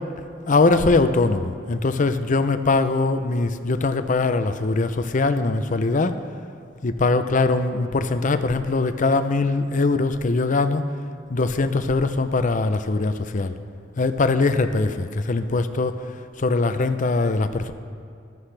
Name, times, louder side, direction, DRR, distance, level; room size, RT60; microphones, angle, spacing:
voice 1, 0.4-6.2 6.8-10.8 11.3-13.5 14.0-16.0 16.4-17.7, left 3 dB, 45° left, 10 dB, 0.6 m, -21 dB
14.0 x 13.5 x 3.3 m, 2.5 s
head